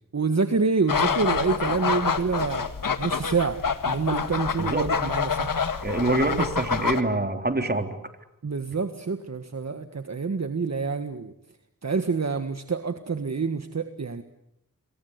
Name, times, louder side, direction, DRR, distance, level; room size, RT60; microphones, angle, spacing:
voice 1, 0.1-2.7 3.0-5.6 6.4-6.5 8.4-11.3 11.8-14.2, right 4 dB, 50° right, 8 dB, 1.7 m, -27 dB
sound 1, 0.9-7.0, left 6 dB, 80° left, 1.9 m, -27 dB
voice 2, 5.8-8.0, right 2 dB, 30° right, 6 dB, 3.5 m, -25 dB
27.5 x 23.0 x 8.2 m, 0.82 s
cardioid pair, 55°, 33 cm